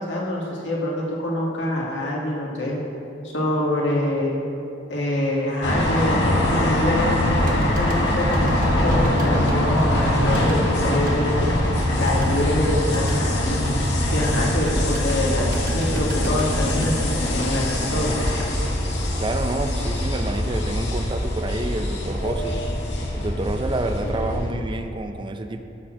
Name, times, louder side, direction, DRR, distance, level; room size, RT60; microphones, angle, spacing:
voice 1, 0.0-2.8 3.2-4.4 4.9-11.4 12.0-13.6 14.1-18.2, left 1 dB, 85° left, -3 dB, 2.0 m, -25 dB
sound 1, 5.6-24.5, left 1 dB, 65° left, 1.6 m, -23 dB
sound 2, 7.5-19.6 19.9-20.0, right 2 dB, 50° right, 1.2 m, -37 dB
voice 2, 19.2-22.7 23.1-25.6, right 2 dB, 25° right, 7 dB, 0.4 m, -28 dB
13.0 x 4.4 x 6.1 m, 2.9 s
head